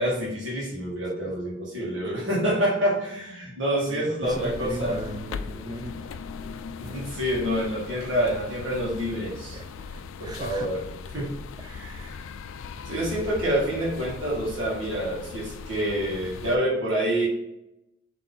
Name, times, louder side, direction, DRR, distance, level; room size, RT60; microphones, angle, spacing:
voice 1, 0.0-5.0 6.8-9.6 10.2-10.8 11.1-11.3 11.6-12.2 12.8-17.3, right 1 dB, 65° right, -5 dB, 1.7 m, -27 dB
voice 2, 3.9-6.2 6.9-7.0 9.5-10.7, right 1 dB, 20° right, 7 dB, 0.4 m, -38 dB
sound 1, 4.2-16.6, left 5 dB, 75° left, 0.3 m, -39 dB
4.1 x 3.2 x 3.7 m, 0.86 s
head